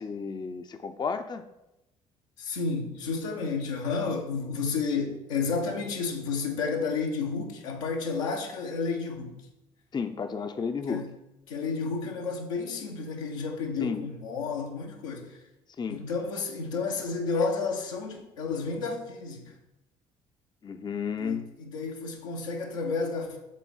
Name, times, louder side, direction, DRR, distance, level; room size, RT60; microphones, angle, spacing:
voice 1, 0.0-1.4 9.9-11.0 13.8-14.0 15.8-16.0 20.6-21.5, left 5 dB, 25° left, 0.5 m, -32 dB
voice 2, 2.4-9.4 10.9-11.1 11.5-15.4 15.9-19.6 21.2-23.4, left 4 dB, 85° left, 0.9 m, -31 dB
7.4 x 3.5 x 4.0 m
hypercardioid pair, 55°, 16 cm